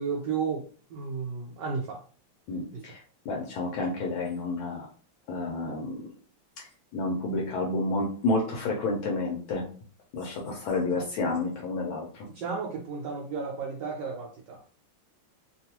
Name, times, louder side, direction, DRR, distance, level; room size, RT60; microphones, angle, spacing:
voice 1, 0.0-2.0 2.7-2.9 12.3-14.6, right 5 dB, 75° right, 0 dB, 1.0 m, -33 dB
voice 2, 2.5-4.9 5.3-6.1 6.6-9.7 10.1-12.3, left 2 dB, 75° left, -1 dB, 1.4 m, -30 dB
3.4 x 2.3 x 2.8 m, 0.41 s
omnidirectional pair, 2.4 m